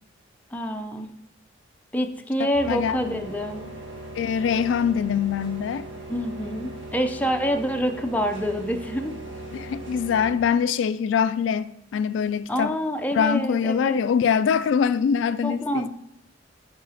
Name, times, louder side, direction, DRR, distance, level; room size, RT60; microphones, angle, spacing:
voice 1, 0.5-1.1 1.9-3.7 6.1-9.1 12.5-14.1 15.4-15.9, equal, 10° left, 0.5 m, -27 dB
voice 2, 2.4-3.2 4.2-5.9 9.5-12.7 13.1-15.9, left 7 dB, 75° left, 0.3 m, -24 dB
sound 1, 2.5-10.3, right 2 dB, 75° right, 1.9 m, -39 dB
5.7 x 4.8 x 4.9 m
head